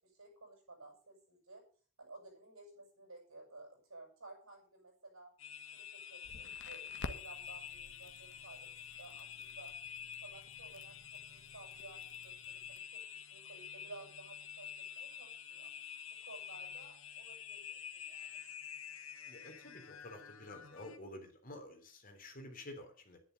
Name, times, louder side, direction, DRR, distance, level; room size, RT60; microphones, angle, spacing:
voice 1, 0.0-1.6 2.0-5.3 5.7-9.7 10.2-15.7 16.1-18.4, right 2 dB, 85° right, -2 dB, 7.6 m, -55 dB
sound 1, 5.4-21.0, left 8 dB, 80° left, 1.6 m, -48 dB
Crackle, 6.2-12.8, left 2 dB, 60° left, 1.3 m, -52 dB
voice 2, 19.3-23.2, left 1 dB, 45° left, 4 dB, 3.4 m, -50 dB
11.0 x 10.5 x 6.8 m, 0.41 s
head